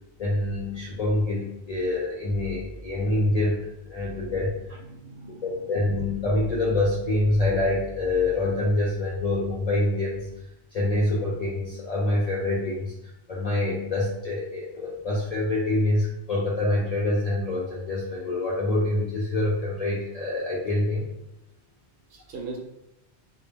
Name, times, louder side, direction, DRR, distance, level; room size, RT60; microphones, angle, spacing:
voice 1, 0.2-4.8 5.4-10.3 10.7-12.9 13.3-21.1, left 2 dB, 60° left, -5 dB, 0.4 m, -26 dB
voice 2, 4.0-4.3 4.8-5.8 6.1-6.2 22.1-22.6, right 3 dB, 65° right, -1 dB, 0.8 m, -41 dB
2.2 x 2.0 x 3.1 m, 0.87 s
omnidirectional pair, 1.1 m